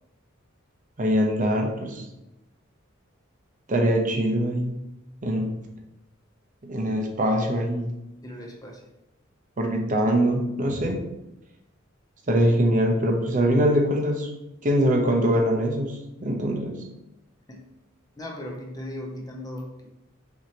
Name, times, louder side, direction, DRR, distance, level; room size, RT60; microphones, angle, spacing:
voice 1, 1.0-2.0 3.7-4.8 5.2-5.5 6.6-7.9 9.6-11.0 12.3-14.3 14.6-16.8, equal, 40° right, 2 dB, 0.7 m, -23 dB
voice 2, 8.2-8.9 17.5-17.7 18.2-19.9, left 1 dB, 20° left, 1 dB, 0.6 m, -37 dB
5.9 x 2.8 x 2.9 m, 0.93 s
head